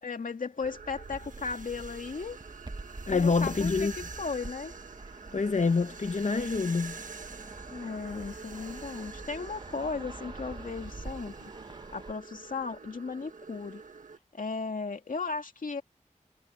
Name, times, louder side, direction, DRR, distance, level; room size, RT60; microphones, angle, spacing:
voice 1, 0.0-2.4 3.1-4.7 7.7-11.3 11.9-13.8 14.3-15.8, left 4 dB, 85° left, 2.4 m, -36 dB
sound 1, 0.6-14.2, right 4 dB, 75° right, 1.4 m, -46 dB
Fixed-wing aircraft airplane, 1.1-12.1, right 2 dB, 35° right, 1.2 m, -46 dB
voice 2, 3.1-3.9 5.3-7.0, left 4 dB, 65° left, 1.1 m, -26 dB
wide cardioid pair, 65°, 13 cm